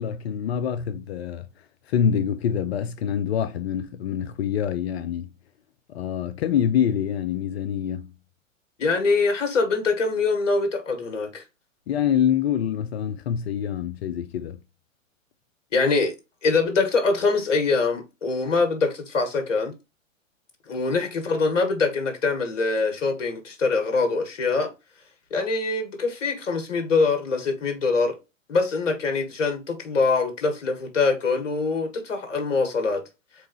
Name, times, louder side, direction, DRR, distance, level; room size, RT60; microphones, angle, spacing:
voice 1, 0.0-1.4 1.9-5.3 5.9-8.1 11.9-14.6, left 9 dB, 50° left, 0.6 m, -25 dB
voice 2, 8.8-11.4 15.7-16.1 16.4-19.7 20.7-24.7 25.3-28.1 28.5-33.0, left 4 dB, 65° left, 1.6 m, -24 dB
4.6 x 3.4 x 2.9 m
figure-of-eight pair, 110°, 40 cm